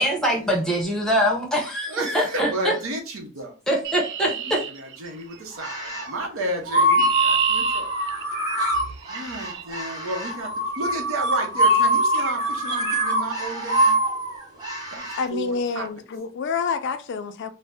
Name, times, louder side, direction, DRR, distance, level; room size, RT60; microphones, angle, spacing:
voice 1, 0.0-2.8 3.7-4.6, equal, 5° left, 0.7 m, -23 dB
voice 2, 1.9-3.6 4.2-7.9 9.1-14.0 14.9-15.9, right 1 dB, 75° right, 0.8 m, -32 dB
Chirp tweet, 3.8-5.5 6.5-9.6 10.7-11.0 11.6-11.9 12.1-12.4 12.7-13.0, right 8 dB, 55° right, 0.4 m, -31 dB
sound 1, 5.5-6.1 6.6-15.2, right 1 dB, 20° right, 1.4 m, -23 dB
voice 3, 15.2-17.5, left 5 dB, 55° left, 0.3 m, -28 dB
2.6 x 2.0 x 3.4 m
head